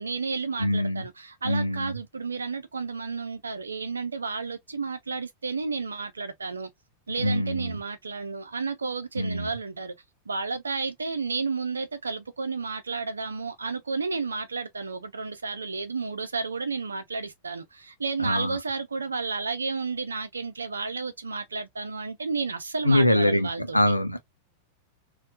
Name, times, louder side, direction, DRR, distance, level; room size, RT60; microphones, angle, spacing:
voice 1, 0.0-6.7 7.1-9.9 10.3-23.9, right 4 dB, 75° right, 0.7 m, -32 dB
voice 2, 0.6-1.0 1.4-1.9 7.2-7.8 9.2-9.5 18.2-18.6 22.8-24.2, left 1 dB, 90° left, 0.7 m, -24 dB
4.3 x 2.4 x 2.3 m
figure-of-eight pair, 90°, 0 cm